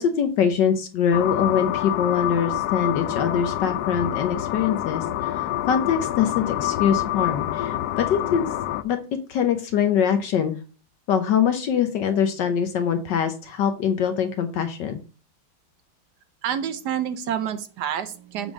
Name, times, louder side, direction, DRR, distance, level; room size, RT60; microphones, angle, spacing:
voice 1, 0.0-8.4 8.8-9.0 9.3-10.5 11.1-15.0, left 7 dB, 65° left, 8 dB, 1.3 m, -23 dB
sound 1, 1.1-8.8, left 13 dB, 90° left, 0.8 m, -27 dB
voice 2, 16.4-18.5, right 9 dB, 70° right, 11 dB, 1.0 m, -28 dB
7.8 x 3.6 x 6.1 m, 0.36 s
omnidirectional pair, 2.3 m